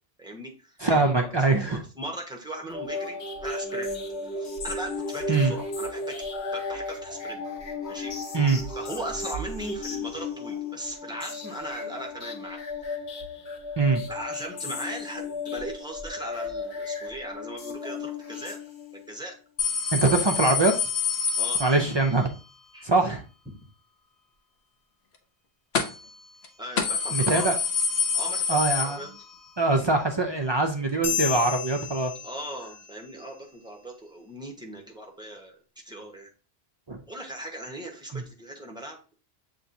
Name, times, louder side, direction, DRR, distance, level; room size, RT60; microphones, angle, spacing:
voice 1, 0.2-3.9 4.2-7.4 7.9-8.1 8.7-12.6 14.1-18.6 18.9-19.3 21.4-21.6 22.7-22.9 26.6-27.5 28.1-29.1 32.0-35.6 35.8-36.3 37.1-39.1, right 1 dB, 5° right, 0 dB, 0.9 m, -38 dB
voice 2, 0.8-1.8 5.3-5.5 8.3-8.6 13.8-14.0 19.9-20.8 21.6-22.3 22.8-23.2 27.1-27.6 28.5-29.0 29.6-32.1 36.9-37.0 38.1-38.2, right 3 dB, 45° right, 3 dB, 0.3 m, -23 dB
sound 1, 2.7-19.1, left 3 dB, 90° left, 1.3 m, -35 dB
sound 2, 19.6-22.3 25.7-26.1 26.4-26.5 26.8-29.5 29.8-29.9 30.9-31.0, left 6 dB, 70° left, 0.9 m, -27 dB
sound 3, 31.0-32.9, left 8 dB, 45° left, 0.7 m, -32 dB
6.9 x 3.0 x 2.6 m, 0.35 s
omnidirectional pair, 1.1 m